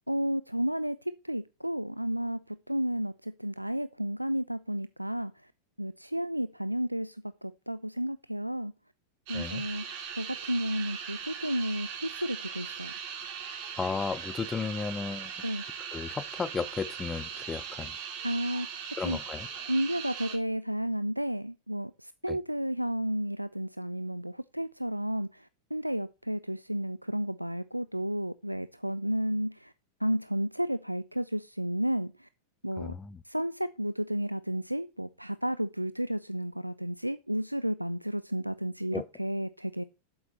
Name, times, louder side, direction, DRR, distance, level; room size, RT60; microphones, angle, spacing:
voice 1, 0.1-1.0 1.2-5.3 5.8-7.2 7.4-8.7 9.3-9.8 10.2-12.9 15.4-15.6 18.2-18.8 19.0-19.2 19.7-29.7 30.0-32.3 32.6-32.9 33.3-39.8, equal, 90° right, 0.4 m, -32 dB
voice 2, 9.3-9.6 13.8-15.3 15.9-17.9 19.0-19.5 22.3-22.4 32.8-33.2 38.9-39.0, left 5 dB, 15° left, 0.6 m, -34 dB
sound 1, 9.3-20.4, right 7 dB, 45° right, 2.4 m, -40 dB
7.9 x 7.9 x 4.3 m
figure-of-eight pair, 90°, 0 cm